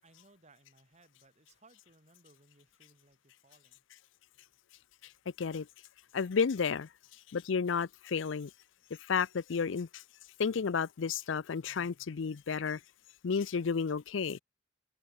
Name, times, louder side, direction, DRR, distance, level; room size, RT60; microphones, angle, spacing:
voice 1, 0.0-3.8, right 2 dB, 35° right, 4.9 m, -64 dB
voice 2, 6.1-6.9 7.3-8.5 9.0-10.0 10.4-12.8 13.2-14.4, left 5 dB, 70° left, 0.5 m, -32 dB
open air
head